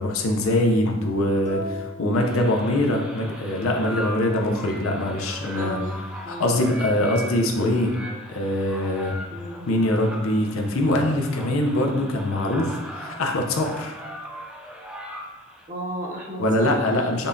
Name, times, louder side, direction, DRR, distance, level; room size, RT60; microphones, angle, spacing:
voice 1, 0.0-5.8 6.3-8.0 8.3-9.2 9.7-14.0 16.4-17.3, left 1 dB, 85° left, 2 dB, 0.6 m, -23 dB
sound 1, 1.5-3.3, left 1 dB, 35° left, 0.8 m, -38 dB
sound 2, 2.1-15.7, equal, 5° right, 0.3 m, -39 dB
voice 2, 5.5-5.9 6.2-6.6 9.3-9.7 15.7-16.9, right 1 dB, 40° right, -4 dB, 0.8 m, -34 dB
5.3 x 2.3 x 2.6 m, 1.1 s
head